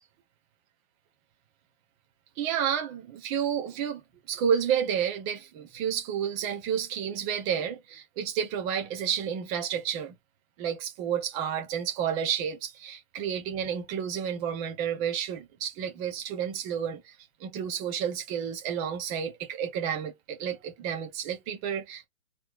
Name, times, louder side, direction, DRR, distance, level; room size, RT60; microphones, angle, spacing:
voice 1, 2.4-4.0 4.3-10.2 10.6-22.1, right 8 dB, 10° right, 0.7 m, -31 dB
4.3 x 3.1 x 2.9 m
hypercardioid pair, 145°, 41 cm